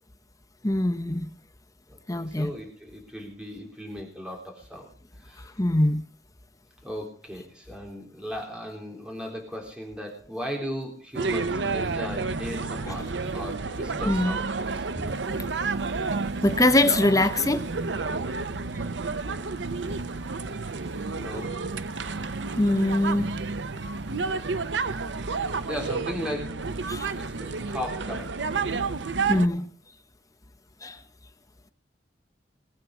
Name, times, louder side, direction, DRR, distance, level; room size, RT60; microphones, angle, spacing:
voice 1, 0.6-1.3 2.1-2.5 5.6-6.0 12.9-13.0 14.1-14.4 16.4-17.6 22.6-23.3 26.9-27.1 29.3-29.7 30.8-31.0, left 1 dB, 20° left, 0.9 m, -23 dB
voice 2, 1.9-4.9 5.2-5.5 6.8-14.9 21.1-21.6 25.7-26.6 27.2-28.5, equal, 5° right, 3.7 m, -37 dB
sound 1, 11.1-29.5, right 4 dB, 80° right, 0.8 m, -30 dB
sound 2, 13.1-15.5 16.8-19.4 19.7-21.8 22.4-23.8 24.2-24.3, equal, 25° right, 7.1 m, -45 dB
20.5 x 8.8 x 4.8 m
head